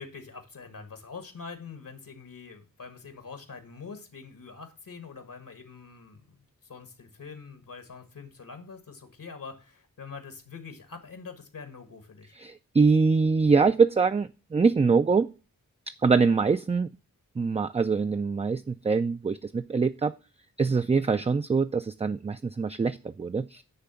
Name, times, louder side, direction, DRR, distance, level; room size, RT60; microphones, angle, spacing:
voice 1, 0.0-12.3, left 5 dB, 70° left, 7 dB, 1.6 m, -44 dB
voice 2, 12.3-15.3 16.0-16.9 17.4-20.1 20.6-23.6, right 4 dB, 20° right, 9 dB, 0.3 m, -24 dB
9.7 x 3.3 x 6.9 m, 0.33 s
wide cardioid pair, 65°, 34 cm